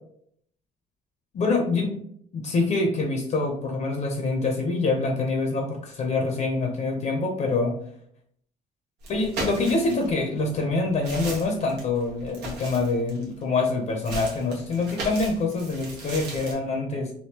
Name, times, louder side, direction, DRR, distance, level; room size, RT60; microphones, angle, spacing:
voice 1, 1.3-2.0 2.3-7.7 9.1-17.1, left 3 dB, 45° left, 2 dB, 0.6 m, -25 dB
sound 1, 9.0-10.2 10.7-13.4 14.0-16.5, right 2 dB, 90° right, 1.1 m, -36 dB
3.5 x 2.6 x 2.8 m, 0.66 s
cardioid pair, 110°, 17 cm